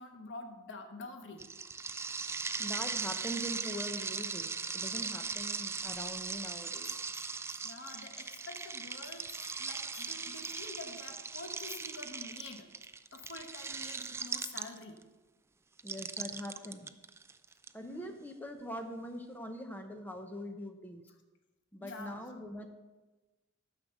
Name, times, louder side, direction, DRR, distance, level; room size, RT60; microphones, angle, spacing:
voice 1, 0.0-1.5 7.6-9.3 9.6-12.7 13.1-15.0 17.8-18.1 21.8-22.2, left 3 dB, 60° left, 5 dB, 1.1 m, -47 dB
sound 1, 1.4-15.0 15.8-17.7, right 5 dB, 10° right, 0.3 m, -39 dB
voice 2, 2.4-6.9 15.8-16.9 17.7-21.0 21.7-22.7, equal, 10° left, 5 dB, 0.8 m, -42 dB
Bell, 5.2-6.5 6.7-11.2, left 5 dB, 80° left, 2.7 m, -59 dB
10.0 x 6.4 x 6.4 m, 1.2 s
head